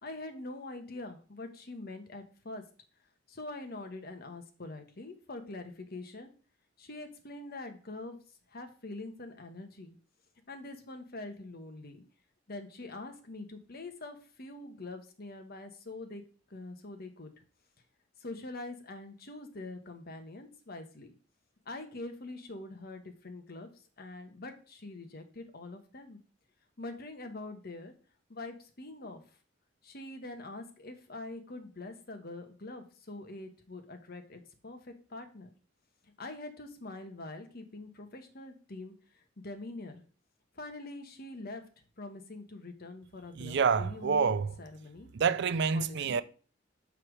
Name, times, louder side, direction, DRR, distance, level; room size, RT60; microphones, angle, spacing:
voice 1, 0.0-2.6 3.3-6.3 6.8-8.2 8.5-10.0 10.5-12.0 12.5-16.2 16.5-17.3 18.2-21.1 21.6-26.2 26.8-27.9 28.3-29.2 29.8-35.5 36.2-40.0 40.5-41.6 42.0-45.1 45.7-46.2, left 2 dB, 50° left, 1.2 m, -44 dB
voice 2, 43.4-44.6 45.1-46.2, right 6 dB, 60° right, 0.4 m, -28 dB
5.8 x 4.8 x 6.4 m
head